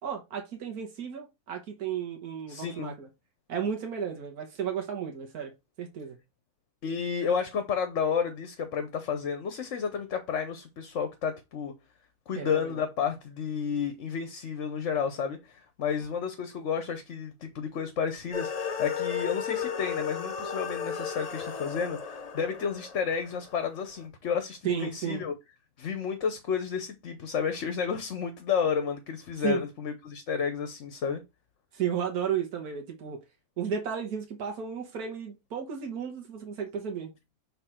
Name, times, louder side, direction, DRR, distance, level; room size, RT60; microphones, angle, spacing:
voice 1, 0.0-3.1 3.5-5.5 5.8-6.2 12.3-12.7 24.6-25.3 29.4-29.6 31.7-33.2 33.6-37.1, right 7 dB, 80° right, 1.7 m, -33 dB
voice 2, 2.5-2.9 6.8-11.7 12.3-25.3 25.8-31.2, left 6 dB, 55° left, 1.1 m, -31 dB
sound 1, 18.3-23.8, left 7 dB, 40° left, 0.6 m, -34 dB
5.8 x 3.8 x 4.4 m
omnidirectional pair, 1.6 m